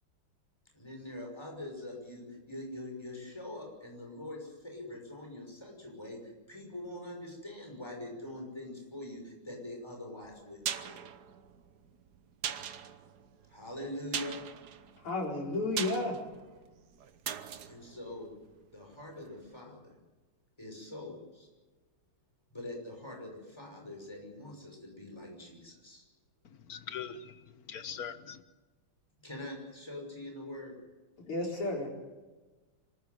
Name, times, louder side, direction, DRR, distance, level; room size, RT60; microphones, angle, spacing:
voice 1, 0.7-11.0 13.5-14.4 17.7-18.3 18.7-20.0 20.6-21.5 22.5-26.0 29.2-30.7, left 1 dB, 10° left, 1 dB, 5.8 m, -44 dB
sound 1, 10.2-19.1 19.4-19.5, right 8 dB, 55° right, 1.4 m, -41 dB
voice 2, 15.0-16.2 31.2-31.9, left 2 dB, 90° left, -1 dB, 5.5 m, -32 dB
voice 3, 26.4-28.4, left 7 dB, 50° left, 11 dB, 1.4 m, -42 dB
26.0 x 14.0 x 9.4 m, 1.3 s
omnidirectional pair, 2.4 m